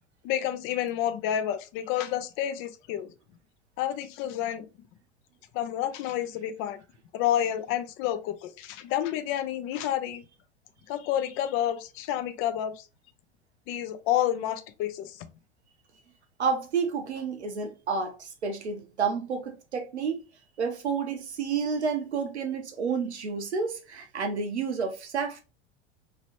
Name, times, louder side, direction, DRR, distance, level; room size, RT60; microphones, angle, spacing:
voice 1, 0.2-3.1 3.8-4.7 5.5-6.8 7.1-10.2 10.9-12.9 13.7-15.3, left 11 dB, 40° left, 0.5 m, -29 dB
voice 2, 16.4-20.2 20.6-25.4, right 5 dB, 80° right, 0.8 m, -30 dB
3.0 x 2.9 x 2.9 m
figure-of-eight pair, 80°, 33 cm